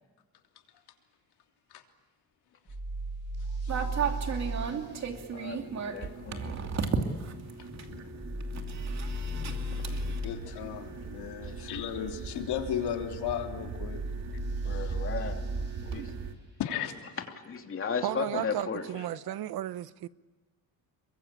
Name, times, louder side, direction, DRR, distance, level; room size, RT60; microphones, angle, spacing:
sound 1, 2.7-4.7 8.2-10.3 13.7-15.8, right 1 dB, 30° right, 6.6 m, -34 dB
sound 2, 3.7-16.3, right 5 dB, 45° right, 2.7 m, -37 dB
voice 1, 5.3-6.6 9.7-9.8 11.4-11.5 14.6-15.4 15.8-16.1 17.5-18.9, left 6 dB, 35° left, 2.9 m, -35 dB
Thunder, 7.1-15.9, left 2 dB, 5° left, 5.2 m, -51 dB
voice 2, 9.9-14.0 14.6-14.9 16.6-17.0 19.2-19.3, left 9 dB, 80° left, 3.3 m, -35 dB
voice 3, 18.0-20.1, right 13 dB, 70° right, 1.0 m, -34 dB
28.0 x 23.5 x 8.9 m
cardioid pair, 165°, 39 cm